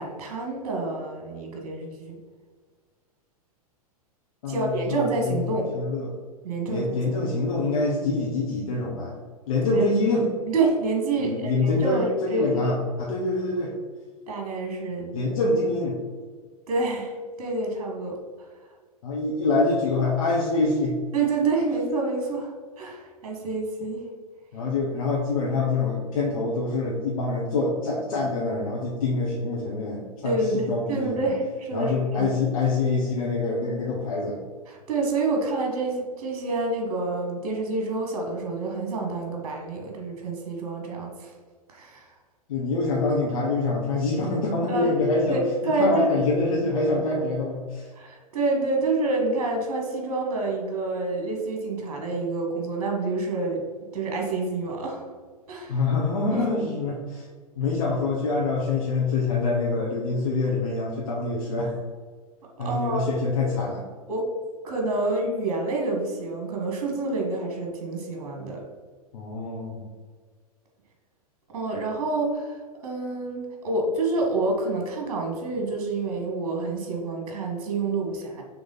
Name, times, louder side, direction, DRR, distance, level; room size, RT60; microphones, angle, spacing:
voice 1, 0.0-2.2 4.5-5.7 6.4-6.9 9.6-9.8 10.5-12.1 12.3-12.8 14.3-15.2 16.7-18.2 21.1-24.0 30.2-32.3 34.7-41.3 41.7-42.1 44.7-44.9 45.3-46.1 48.0-53.6 53.9-55.1 55.5-55.8 56.3-56.5 62.6-63.1 64.1-64.3 64.6-68.6 71.5-72.6 72.8-78.4, right 3 dB, 55° right, 1 dB, 1.8 m, -28 dB
voice 2, 4.4-6.1 6.7-9.2 9.5-10.3 11.2-13.7 15.1-16.0 19.0-21.0 24.5-31.3 31.7-34.4 42.5-47.9 55.7-57.2 57.5-61.7 62.6-63.8 69.1-69.9, left 3 dB, 60° left, -4 dB, 1.3 m, -25 dB
6.1 x 3.5 x 5.6 m, 1.5 s
figure-of-eight pair, 100°, 20 cm